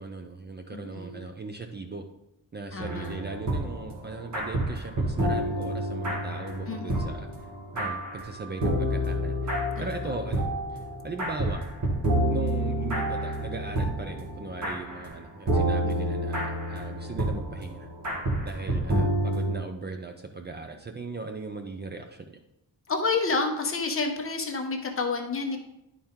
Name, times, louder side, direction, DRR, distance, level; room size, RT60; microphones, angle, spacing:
voice 1, 0.0-2.0 2.5-7.3 7.7-10.5 11.0-11.6 12.3-17.9 18.4-22.4, right 3 dB, 30° right, 5 dB, 0.5 m, -38 dB
voice 2, 0.7-1.2 2.7-3.1 6.7-7.2 9.8-10.1 15.8-16.2 22.9-25.6, left 4 dB, 35° left, 3 dB, 1.0 m, -30 dB
sound 1, 2.8-15.2 15.5-19.5, right 1 dB, 45° right, 1.7 m, -29 dB
11.0 x 4.5 x 3.6 m, 0.86 s
wide cardioid pair, 155°, 37 cm